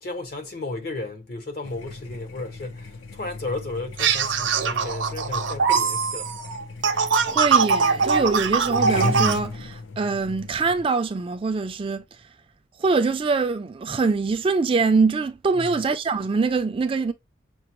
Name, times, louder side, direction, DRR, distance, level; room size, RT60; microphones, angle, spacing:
voice 1, 0.0-6.3 15.6-15.7, left 2 dB, 55° left, 0.9 m, -34 dB
sound 1, 1.6-10.8, left 3 dB, 80° left, 0.6 m, -35 dB
sound 2, 4.0-9.4, right 5 dB, 70° right, 0.6 m, -22 dB
voice 2, 7.3-12.0 12.8-17.1, right 4 dB, 30° right, 0.3 m, -23 dB
5.9 x 2.0 x 2.9 m
head